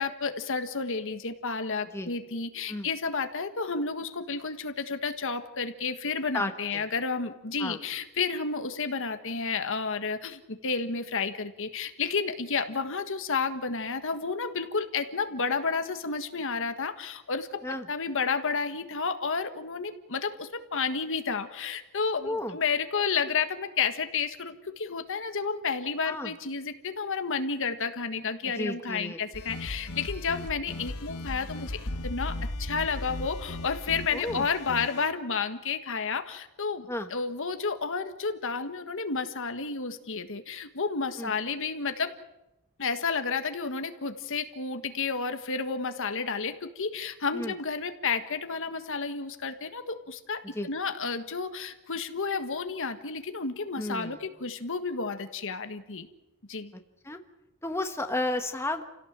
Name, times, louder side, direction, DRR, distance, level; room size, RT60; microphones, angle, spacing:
voice 1, 0.0-17.6 17.9-31.8 32.0-42.1 42.8-56.1 56.5-56.7, left 5 dB, 65° left, 8 dB, 1.6 m, -31 dB
voice 2, 6.3-6.8 7.6-7.8 17.6-17.9 22.2-22.6 26.0-26.3 28.6-29.2 34.1-34.5 36.9-37.1 41.2-41.3 47.3-47.5 50.5-50.7 53.8-54.2 57.0-57.2 57.6-58.8, left 1 dB, 10° left, 6 dB, 1.4 m, -32 dB
sound 1, 29.3-35.1, left 1 dB, 90° left, 1.5 m, -37 dB
29.0 x 17.0 x 7.5 m, 0.94 s
head